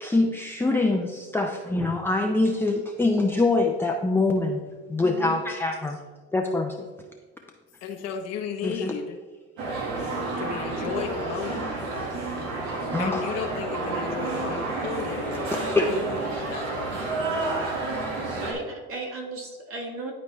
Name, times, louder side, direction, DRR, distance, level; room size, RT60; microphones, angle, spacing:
voice 1, 0.0-4.6 4.9-6.0 6.3-6.9 8.6-8.9 12.9-13.2 15.8-15.9, left 2 dB, 5° left, 1 dB, 0.5 m, -24 dB
voice 2, 5.0-5.4 18.4-20.1, right 2 dB, 45° right, 0 dB, 2.0 m, -35 dB
voice 3, 7.8-9.2 10.4-11.7 13.0-17.3, left 6 dB, 55° left, 5 dB, 0.9 m, -34 dB
sound 1, 9.6-18.5, right 2 dB, 90° right, 1.5 m, -30 dB
10.5 x 4.2 x 3.0 m, 1.3 s
supercardioid pair, 90°, 31 cm